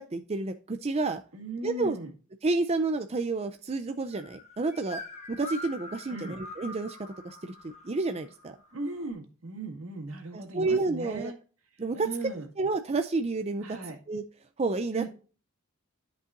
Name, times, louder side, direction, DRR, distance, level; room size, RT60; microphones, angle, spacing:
voice 1, 0.0-1.2 1.6-2.0 2.4-5.0 5.3-7.0 7.2-8.6 10.3-11.3 11.8-12.1 12.6-13.6 14.1-14.2 14.6-15.1, right 3 dB, 30° right, 7 dB, 0.5 m, -30 dB
voice 2, 1.3-2.1 6.1-6.4 8.7-11.4 11.7-12.5 13.6-14.0 14.9-15.1, right 2 dB, 70° right, 3 dB, 2.1 m, -37 dB
sound 1, 4.1-9.1, left 2 dB, 35° left, 1.3 m, -44 dB
12.5 x 5.4 x 2.5 m, 0.38 s
head